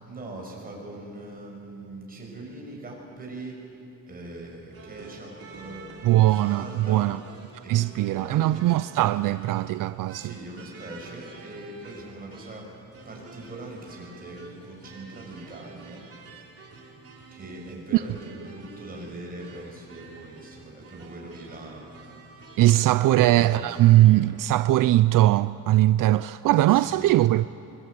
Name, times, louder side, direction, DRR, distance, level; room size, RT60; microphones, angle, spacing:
voice 1, 0.1-7.2 7.6-7.8 8.1-8.6 10.1-12.7 13.0-16.5 17.3-21.9 22.2-22.3 23.0-24.1 26.7-27.1, right 2 dB, 30° right, 5.8 m, -41 dB
sound 1, 4.7-24.2, right 3 dB, 45° right, 3.3 m, -48 dB
voice 2, 6.0-7.2 7.7-10.3 17.9-18.0 22.6-27.5, right 15 dB, 80° right, 0.5 m, -20 dB
24.0 x 22.5 x 8.4 m
cardioid pair, 150°, 32 cm